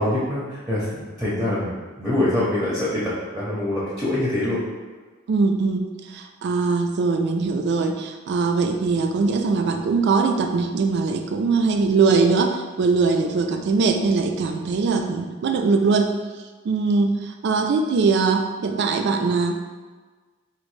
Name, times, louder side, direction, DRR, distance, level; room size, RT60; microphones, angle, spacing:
voice 1, 0.0-3.0 3.3-4.6, left 1 dB, 5° right, -9 dB, 0.6 m, -24 dB
voice 2, 5.3-16.2 16.7-19.5, right 4 dB, 55° right, 5 dB, 0.3 m, -21 dB
3.1 x 2.5 x 3.1 m, 1.4 s
head